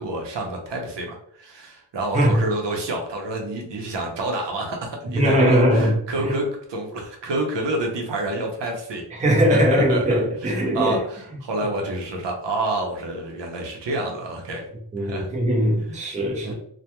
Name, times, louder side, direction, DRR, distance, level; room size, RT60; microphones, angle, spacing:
voice 1, 0.0-9.2 9.5-14.7 15.0-15.3 15.9-16.0 16.4-16.5, right 2 dB, 80° right, 0.7 m, -28 dB
voice 2, 5.1-5.9 6.2-6.4 9.1-11.0 14.9-16.5, equal, 20° right, 0.5 m, -20 dB
2.2 x 2.2 x 2.8 m
wide cardioid pair, 170°, 42 cm